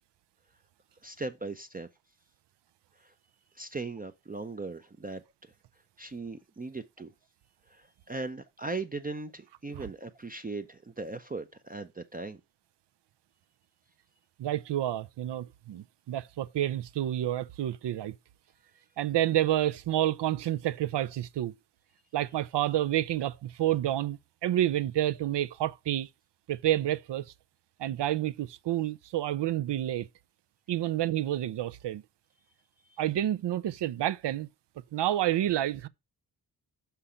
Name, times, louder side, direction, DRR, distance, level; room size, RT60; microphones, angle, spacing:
voice 1, 1.0-1.9 3.0-3.1 3.6-5.5 6.0-7.1 7.7-12.4 32.9-33.0, right 3 dB, 20° right, 0.4 m, -38 dB
voice 2, 14.4-18.1 19.0-21.5 22.1-26.1 26.5-27.3 27.8-30.1 30.7-32.0 33.0-34.5 34.9-35.9, right 13 dB, 85° right, 0.5 m, -29 dB
5.7 x 5.7 x 4.9 m
wide cardioid pair, 140°, 41 cm